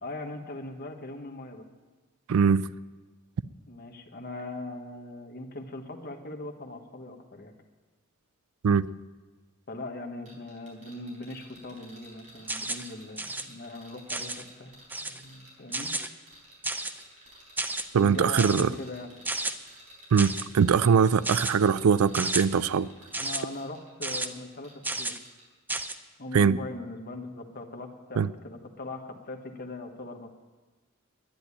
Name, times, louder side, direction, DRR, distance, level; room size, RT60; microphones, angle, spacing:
voice 1, 0.0-1.7 3.7-7.5 9.7-15.9 18.0-19.1 23.2-25.2 26.2-30.3, left 2 dB, 45° left, 1.4 m, -40 dB
voice 2, 2.3-2.7 8.6-8.9 17.9-18.7 20.1-22.9 26.3-26.6 28.2-28.3, right 6 dB, 80° right, 0.4 m, -22 dB
sound 1, 10.3-24.9 25.2-25.5, equal, 35° right, 4.8 m, -53 dB
sound 2, 12.5-12.9 13.2-13.4 14.1-14.4 14.9-15.2 15.7-16.1 16.6-17.0 17.6-17.8 18.4-18.6 19.2-19.5 20.2-20.5 21.2-21.5 22.1-22.4 23.1-23.4 24.0-24.3 24.8-25.2 25.7-25.9, right 2 dB, 10° right, 0.6 m, -32 dB
10.5 x 10.5 x 9.9 m
head